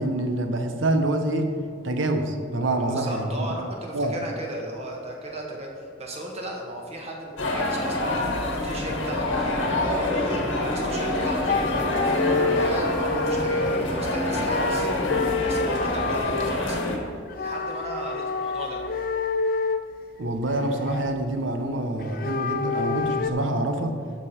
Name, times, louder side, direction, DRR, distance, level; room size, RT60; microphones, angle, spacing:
voice 1, 0.0-1.6 1.8-3.5 3.9-4.1 20.2-24.0, right 1 dB, 90° right, 6 dB, 0.9 m, -26 dB
voice 2, 2.8-14.9 15.4-16.8 17.4-18.8, right 1 dB, 35° right, 0 dB, 1.5 m, -35 dB
sound 1, 7.4-17.0, left 1 dB, 90° left, 1.4 m, -26 dB
sound 2, 11.1-11.2 11.4-14.0 14.4-16.6 17.3-19.9 20.3-21.3 22.0-23.3, left 4 dB, 50° left, 0.4 m, -27 dB
13.5 x 5.3 x 4.3 m, 2.3 s
head